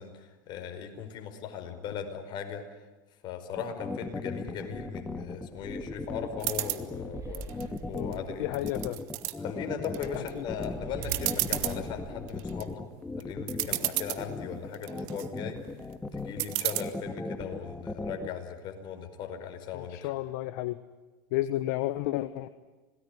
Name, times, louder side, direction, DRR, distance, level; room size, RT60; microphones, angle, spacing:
voice 1, 0.0-2.6 3.2-8.7 9.4-12.8 13.2-15.6 16.1-20.1, left 7 dB, 50° left, 6 dB, 5.1 m, -38 dB
sound 1, 3.6-18.3, left 3 dB, 10° left, 2.0 m, -37 dB
sound 2, 5.1-8.8 9.7-13.4, right 4 dB, 30° right, 7.3 m, -45 dB
sound 3, 6.4-6.8 7.3-8.1 8.5-9.3 9.8-10.3 10.6-10.7 11.0-11.8 12.3-12.6 13.2-13.3 13.5-14.2 14.7-15.3 16.4-16.8, right 21 dB, 65° right, 1.8 m, -31 dB
voice 2, 7.9-9.0 10.1-10.4 19.7-20.8 21.3-22.5, left 16 dB, 70° left, 13 dB, 1.1 m, -32 dB
27.0 x 19.0 x 9.9 m, 1.2 s
hypercardioid pair, 95°, 10 cm